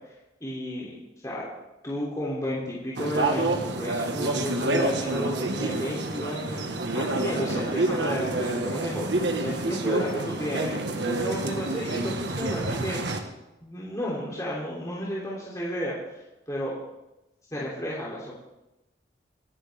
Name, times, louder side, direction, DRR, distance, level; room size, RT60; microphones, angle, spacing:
voice 1, 0.4-1.0 1.2-1.5 1.8-6.6 6.9-13.0 13.6-15.9 16.5-16.7 17.5-18.3, equal, 20° left, -5 dB, 3.1 m, -32 dB
sound 1, 3.0-13.2, right 2 dB, 80° right, 1.5 m, -28 dB
27.0 x 11.0 x 3.6 m, 0.97 s
head